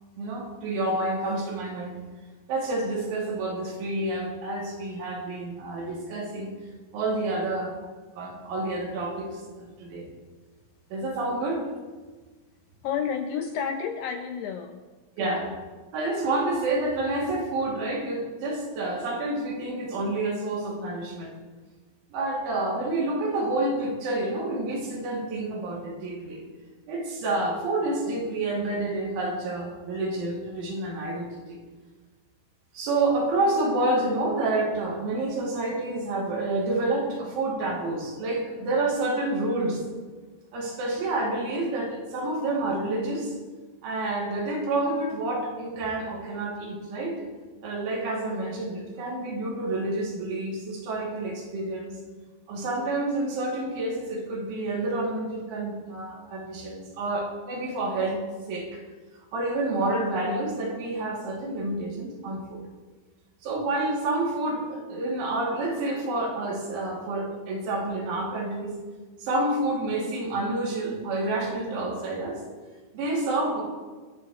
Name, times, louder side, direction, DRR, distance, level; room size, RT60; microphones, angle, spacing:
voice 1, 0.2-2.0 2.5-6.5 6.9-7.8 8.2-10.1 10.9-11.6 15.2-15.5 15.9-21.3 22.1-26.4 26.9-31.6 32.7-39.8 40.5-43.3 43.8-47.2 47.6-52.0 52.5-58.2 58.5-58.8 59.3-62.6 63.4-68.7 69.2-72.4 72.9-73.6, right 2 dB, 75° right, -3 dB, 5.4 m, -29 dB
voice 2, 12.8-14.8 15.2-15.6, left 7 dB, 80° left, 4 dB, 2.4 m, -31 dB
24.5 x 11.5 x 3.3 m, 1.4 s
omnidirectional pair, 5.5 m